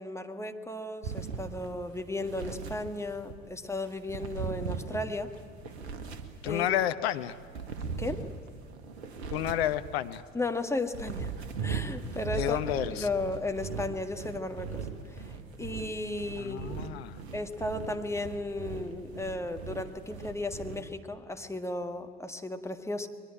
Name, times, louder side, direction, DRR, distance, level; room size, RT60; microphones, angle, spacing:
voice 1, 0.0-5.3 6.4-6.7 8.0-8.3 10.3-11.3 11.6-12.6 12.9-16.9 17.3-23.1, left 2 dB, 10° left, 6 dB, 1.7 m, -35 dB
Sitting on leather couch and rocking, 1.0-3.4 3.8-6.8 7.2-10.2 10.7-20.8, right 5 dB, 75° right, 1.8 m, -39 dB
voice 2, 6.4-7.4 9.3-10.2 12.3-13.1 16.4-17.2, left 12 dB, 70° left, 11 dB, 1.0 m, -30 dB
22.0 x 22.0 x 9.0 m, 2.2 s
figure-of-eight pair, 60°, 33 cm